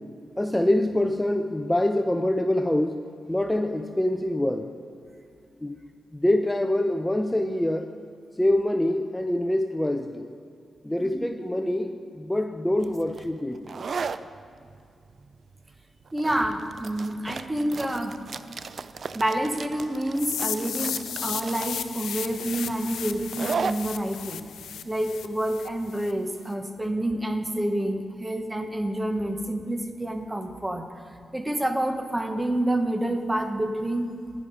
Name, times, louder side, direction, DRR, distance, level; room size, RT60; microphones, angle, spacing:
voice 1, 0.4-3.0 3.3-4.7 5.6-5.8 6.1-7.9 8.4-10.3 10.8-13.6, left 1 dB, 10° left, 7 dB, 0.6 m, -25 dB
sound 1, 12.8-26.2, right 5 dB, 65° right, 0.4 m, -36 dB
voice 2, 16.1-18.2 19.1-24.4 24.8-30.9 31.3-34.1, right 1 dB, 20° right, 7 dB, 1.1 m, -28 dB
sound 2, 20.2-26.1, left 9 dB, 85° left, 0.4 m, -34 dB
11.0 x 10.5 x 5.0 m, 2.4 s
cardioid pair, 50°, 0 cm